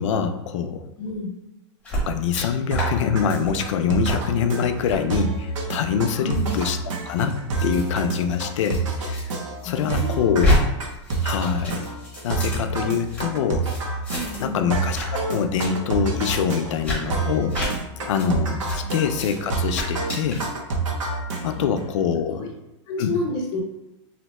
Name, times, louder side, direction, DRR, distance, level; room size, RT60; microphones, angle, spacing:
voice 1, 0.0-0.9 2.0-6.8 7.1-9.3 9.6-10.5 11.2-11.9 12.2-13.7 14.4-17.6 18.1-20.4 21.4-22.5 23.0-23.2, left 7 dB, 75° left, 8 dB, 0.4 m, -24 dB
voice 2, 1.0-1.3 6.2-6.5 9.6-10.4 14.1-14.7 18.8-18.9 21.6-21.7 22.3-22.5 22.9-23.6, left 2 dB, 25° left, -1 dB, 0.6 m, -30 dB
sound 1, 1.8-2.4 2.7-2.9 3.2-3.5 4.0-4.2 4.8-5.0 5.6-9.2 9.6-10.6 10.9-13.2 13.6-14.5 14.7-15.1 15.4-15.7 16.2-16.4 16.8-17.0 17.5-17.7 18.2-18.3 18.6-18.8 19.1-19.4 19.7-20.5, left 1 dB, 5° left, 1.0 m, -28 dB
sound 2, 2.7-21.8, right 3 dB, 85° right, 0.7 m, -28 dB
2.7 x 2.1 x 4.1 m, 0.97 s
supercardioid pair, 170°, 16 cm